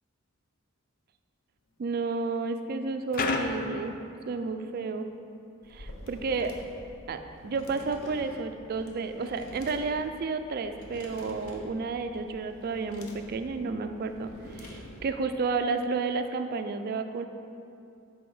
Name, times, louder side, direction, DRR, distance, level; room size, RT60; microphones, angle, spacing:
voice 1, 1.8-4.0 4.3-5.1 5.7-6.5 7.1-17.3, right 4 dB, 45° right, 7 dB, 0.3 m, -31 dB
sound 1, 3.1-4.7, left 3 dB, 40° left, 0.4 m, -31 dB
sound 2, 5.6-15.2, left 1 dB, 80° left, 0.8 m, -47 dB
7.8 x 3.5 x 5.3 m, 2.7 s
head